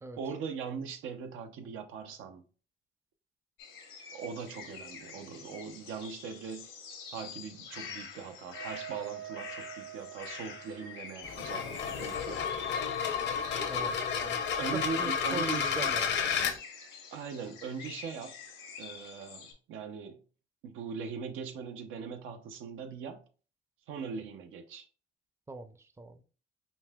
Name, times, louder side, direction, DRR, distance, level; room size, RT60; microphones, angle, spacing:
voice 1, 0.2-2.4 4.1-6.7 7.1-12.8 14.6-15.9 17.1-18.4 18.8-20.2 20.6-23.2 23.9-24.9, right 6 dB, 90° right, 0.6 m, -40 dB
sound 1, 3.6-19.5, left 5 dB, 85° left, 1.2 m, -47 dB
Wind instrument woodwind instrument, 8.5-14.1, right 10 dB, 65° right, 1.1 m, -48 dB
sound 2, 11.2-16.5, left 7 dB, 65° left, 0.7 m, -31 dB
voice 2, 13.7-16.1 25.5-26.2, right 3 dB, 15° right, 0.4 m, -40 dB
5.2 x 2.7 x 2.2 m
cardioid pair, 90°, 20 cm